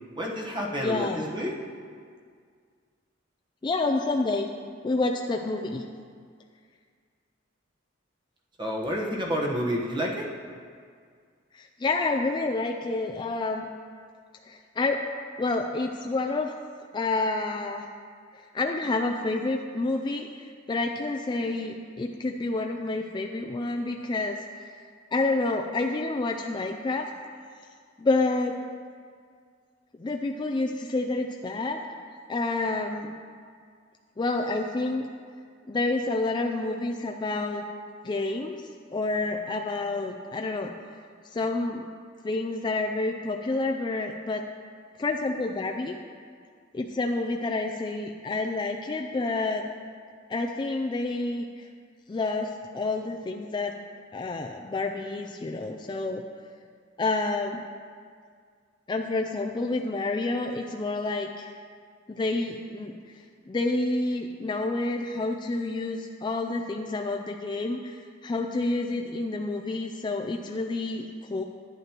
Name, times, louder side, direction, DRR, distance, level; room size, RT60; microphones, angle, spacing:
voice 1, 0.2-1.5 8.6-10.2, equal, 25° right, -2 dB, 1.1 m, -29 dB
voice 2, 0.8-1.2 3.6-4.5 4.8-5.8 11.5-13.7 14.5-15.0 15.4-16.5 16.9-17.9 18.3-24.8 25.1-27.1 28.0-28.5 30.0-31.8 32.3-33.1 34.2-35.1 35.7-37.6 38.0-38.6 38.9-40.7 41.3-41.9 42.2-44.4 45.0-45.9 46.7-49.6 50.3-51.7 52.1-53.7 54.1-56.2 57.0-57.6 58.9-61.5 62.1-71.4, left 2 dB, 25° left, 3 dB, 0.3 m, -29 dB
11.0 x 9.2 x 2.9 m, 2.1 s
head